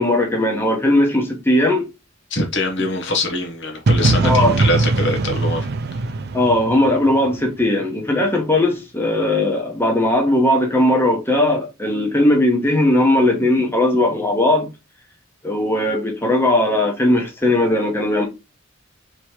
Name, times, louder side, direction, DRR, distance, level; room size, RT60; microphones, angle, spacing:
voice 1, 0.0-1.9 4.2-4.5 6.3-14.7 15.4-18.3, left 1 dB, 10° left, 1.1 m, -18 dB
voice 2, 2.3-5.7 5.9-6.0, left 2 dB, 60° left, 1.1 m, -23 dB
sound 1, 3.9-7.7, right 3 dB, 50° right, 0.5 m, -20 dB
3.3 x 3.1 x 4.4 m
head